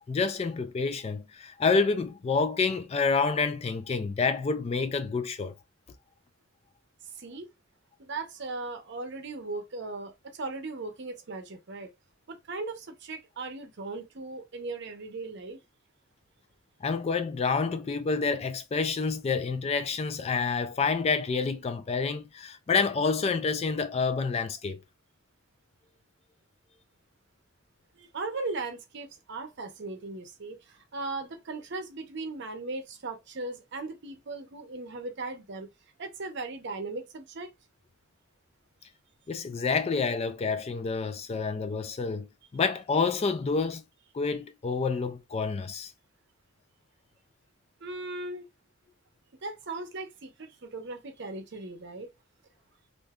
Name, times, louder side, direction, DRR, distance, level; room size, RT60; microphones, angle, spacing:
voice 1, 0.1-5.5 16.8-24.8 39.3-42.3 42.5-43.8 44.1-45.9, left 4 dB, 30° left, 0.3 m, -28 dB
voice 2, 7.1-7.5 8.0-11.9 12.3-15.6 28.0-35.7 36.0-37.5 47.8-48.4 49.4-52.1, right 3 dB, 60° right, 0.7 m, -38 dB
2.6 x 2.2 x 3.5 m
head